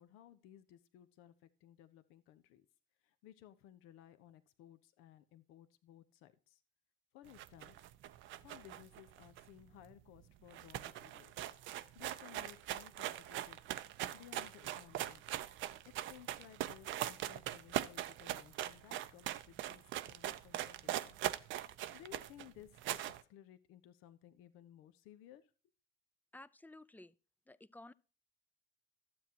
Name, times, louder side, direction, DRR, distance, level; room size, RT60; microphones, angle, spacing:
voice 1, 0.0-2.7 3.0-6.6 7.1-7.8 8.4-11.3 11.9-13.6 13.9-15.4 15.9-21.2 21.9-23.0 23.3-25.5, left 12 dB, 75° left, 0.8 m, -59 dB
sound 1, 7.3-9.9 10.2-10.3 10.5-23.2, right 13 dB, 65° right, 0.5 m, -41 dB
voice 2, 26.3-27.1 27.5-27.9, left 2 dB, 10° left, 0.4 m, -54 dB
12.0 x 7.7 x 2.9 m
hypercardioid pair, 60°, 21 cm